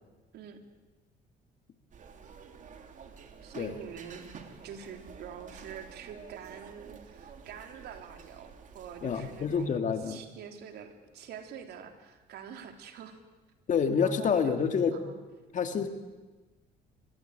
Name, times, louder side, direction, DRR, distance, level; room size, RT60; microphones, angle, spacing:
sound 1, 1.9-9.7, right 6 dB, 50° right, 3.0 m, -50 dB
voice 1, 3.4-4.2 4.6-13.2 14.0-14.6 14.9-15.2, right 8 dB, 70° right, 6 dB, 3.4 m, -45 dB
voice 2, 9.0-10.2 13.7-15.0 15.5-15.9, left 6 dB, 50° left, 7 dB, 2.5 m, -28 dB
24.5 x 20.5 x 9.2 m, 1.2 s
cardioid pair, 110°, 17 cm